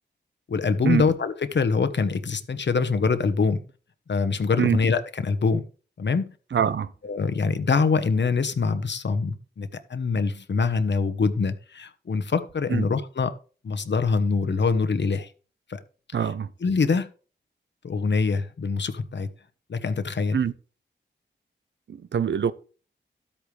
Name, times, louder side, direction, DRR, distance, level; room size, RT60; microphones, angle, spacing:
voice 1, 0.5-3.6 4.1-5.6 6.0-6.3 7.0-13.3 13.6-15.3 15.7-15.8 16.2-16.3 16.6-17.1 17.8-19.3 19.7-20.4, left 4 dB, 65° left, 1.2 m, -24 dB
voice 2, 6.5-6.9 12.7-12.8 16.1-16.5 20.3-20.5 21.9-22.5, right 8 dB, 70° right, 0.7 m, -24 dB
12.5 x 8.7 x 3.3 m
cardioid pair, 60°, 20 cm